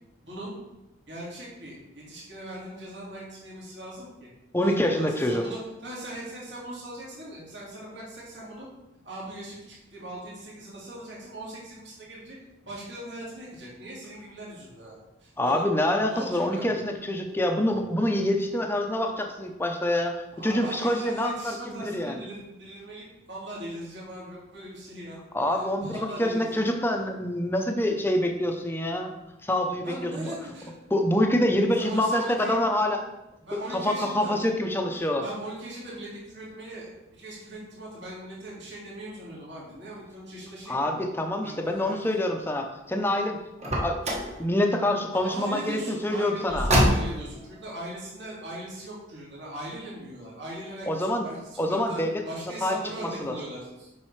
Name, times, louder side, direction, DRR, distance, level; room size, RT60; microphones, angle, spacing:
voice 1, 0.2-0.5 1.1-4.3 4.6-8.7 9.0-12.4 12.7-15.7 16.0-16.8 17.8-17.9 20.3-25.2 25.5-26.7 29.8-30.7 31.7-32.6 33.4-34.4 35.0-36.9 37.2-41.0 41.4-42.2 45.1-53.9, right 1 dB, 60° right, -6 dB, 2.1 m, -40 dB
voice 2, 4.5-5.4 15.4-22.2 25.3-29.2 29.4-30.3 30.9-33.0 33.5-35.2 40.7-46.7 50.9-51.3 51.6-52.2 52.6-53.3, left 1 dB, 10° left, 4 dB, 0.6 m, -26 dB
Car, 43.6-44.4 46.5-47.4, equal, 35° right, 1.1 m, -24 dB
7.4 x 5.6 x 3.2 m, 0.96 s
head